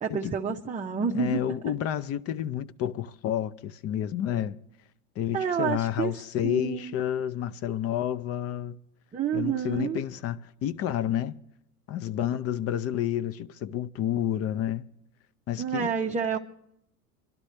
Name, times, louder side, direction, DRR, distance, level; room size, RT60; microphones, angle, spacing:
voice 1, 0.0-1.4 5.3-6.1 6.4-6.9 9.1-10.0 15.6-16.4, right 7 dB, 20° right, 0.7 m, -29 dB
voice 2, 1.1-4.6 5.2-8.8 9.3-11.4 11.9-14.8 15.5-15.9, left 10 dB, 35° left, 0.5 m, -30 dB
25.5 x 12.0 x 3.2 m
hypercardioid pair, 100°, 42 cm